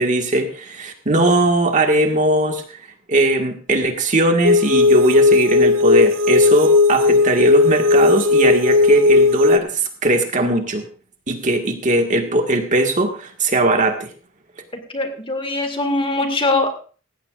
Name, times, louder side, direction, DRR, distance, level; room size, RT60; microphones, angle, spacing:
voice 1, 0.0-2.8 3.1-10.8 11.3-14.1, right 2 dB, 40° right, 4 dB, 1.7 m, -19 dB
sound 1, 4.4-9.6, left 3 dB, 75° right, 0.7 m, -15 dB
voice 2, 14.7-16.7, left 2 dB, 25° left, 6 dB, 2.0 m, -22 dB
18.0 x 16.0 x 2.5 m, 0.39 s
head